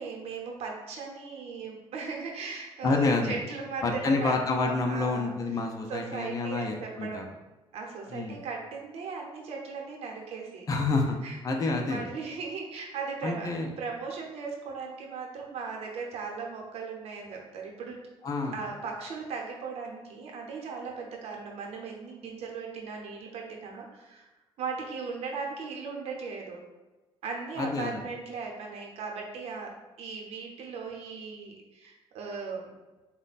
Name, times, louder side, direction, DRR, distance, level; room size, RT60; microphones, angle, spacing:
voice 1, 0.0-5.3 5.9-7.3 7.7-10.6 11.2-11.4 11.9-13.5 13.8-18.0 18.5-24.3 24.6-26.6 27.2-29.7 30.0-32.7, right 5 dB, 85° right, 0 dB, 0.7 m, -38 dB
voice 2, 2.8-3.4 3.8-7.2 8.1-8.4 10.7-11.2 11.4-12.1 13.2-13.7 18.2-18.6 27.6-28.0, left 3 dB, 35° left, 2 dB, 0.5 m, -28 dB
4.3 x 2.1 x 4.0 m, 1.1 s
cardioid pair, 115°, 10 cm